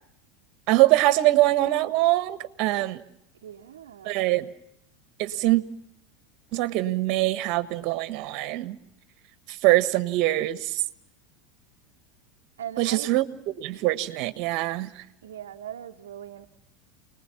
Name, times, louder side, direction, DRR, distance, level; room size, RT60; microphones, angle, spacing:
voice 1, 0.7-3.0 4.0-4.5 5.2-5.6 6.5-8.8 9.5-10.8 12.8-13.3 13.6-15.0, right 17 dB, 55° right, 1.5 m, -23 dB
voice 2, 3.4-4.1 12.6-13.1 15.2-16.5, right 10 dB, 80° right, 0.9 m, -40 dB
29.5 x 20.5 x 5.8 m
hypercardioid pair, 85°, 0 cm